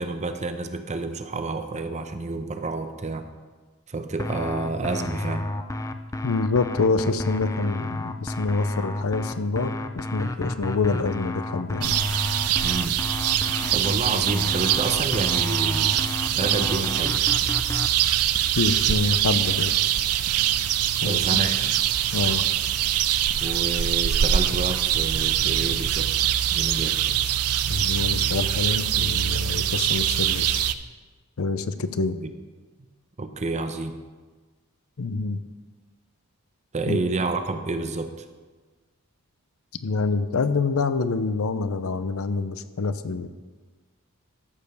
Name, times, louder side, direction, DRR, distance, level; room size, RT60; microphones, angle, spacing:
voice 1, 0.0-3.3 3.9-5.5 12.6-13.0 13.7-16.0 16.3-17.2 21.0-21.7 23.4-27.0 32.2-32.3 33.2-34.0 36.7-38.3, right 3 dB, 30° right, 8 dB, 0.8 m, -29 dB
sound 1, 4.2-17.9, left 1 dB, 15° left, 0.5 m, -31 dB
voice 2, 6.2-12.0 18.6-19.7 21.0-21.4 22.1-22.4 27.7-30.7 31.4-32.2 35.0-35.4 36.9-37.0 39.8-43.3, left 4 dB, 70° left, 12 dB, 0.6 m, -26 dB
sound 2, 11.8-30.7, right 11 dB, 85° right, 0.5 m, -23 dB
13.5 x 5.3 x 6.7 m, 1.4 s
head